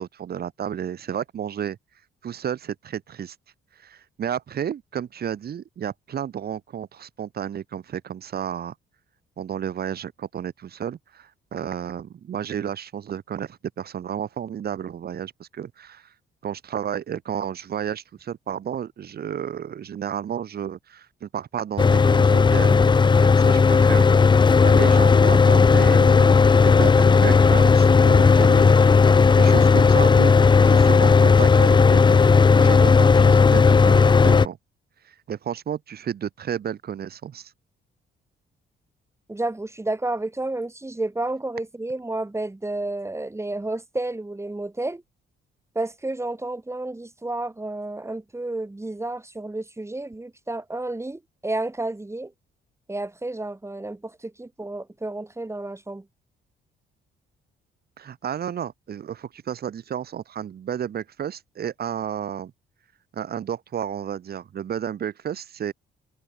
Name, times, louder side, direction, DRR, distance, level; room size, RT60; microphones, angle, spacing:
voice 1, 0.0-1.8 2.2-3.3 3.8-8.7 9.4-16.1 16.4-29.1 29.4-30.3 30.6-32.2 32.5-34.6 35.0-37.5 58.0-62.5 63.1-65.7, right 9 dB, 50° right, 1.3 m, -32 dB
Mechanical fan, 21.8-34.5, left 5 dB, 25° left, 0.6 m, -15 dB
voice 2, 39.3-45.0 45.8-52.3 52.9-56.1, right 2 dB, 15° right, 7.1 m, -31 dB
cardioid pair, 90°, 20 cm